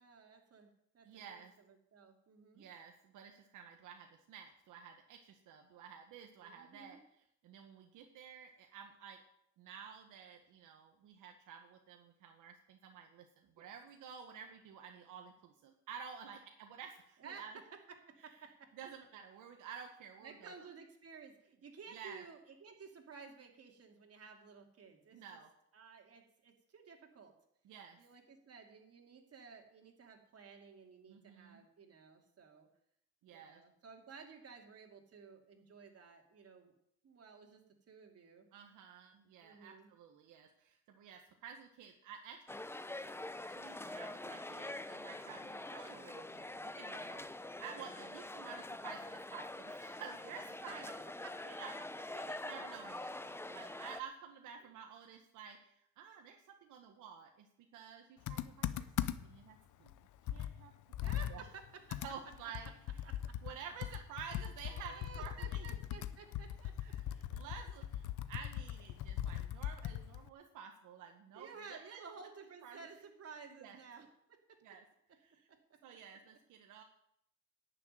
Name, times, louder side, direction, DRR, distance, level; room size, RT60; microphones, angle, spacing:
voice 1, 0.0-2.7 6.4-7.0 13.6-13.7 17.2-17.4 18.1-18.7 20.2-25.4 25.7-27.3 28.0-32.7 33.3-36.7 37.0-38.5 39.4-39.9 45.5-45.7 50.7-50.8 51.2-51.3 54.6-54.7 61.0-61.6 61.9-62.0 63.0-63.5 64.6-66.7 69.9-70.0 71.3-74.4, right 5 dB, 50° right, 2 dB, 3.1 m, -55 dB
voice 2, 1.0-1.5 2.5-7.0 7.4-9.2 9.6-17.6 18.8-20.5 21.9-22.2 25.1-25.5 27.6-28.0 31.1-31.6 33.2-33.6 38.5-42.4 43.6-51.0 51.4-51.7 52.1-57.5 57.7-59.9 60.3-60.7 61.0-61.5 62.0-62.7 63.4-65.7 66.8-72.0 72.6-72.8 73.6-73.8 74.6-74.8 75.2-75.5 75.8-76.8, right 7 dB, 85° right, 3 dB, 1.4 m, -52 dB
sound 1, 42.5-54.0, left 2 dB, 10° left, 0.7 m, -45 dB
Computer keyboard, 58.3-59.4 59.9-60.0 60.3-63.6 63.8-70.3, left 11 dB, 80° left, 0.8 m, -40 dB
11.0 x 6.8 x 9.4 m, 0.74 s
cardioid pair, 90°, 30 cm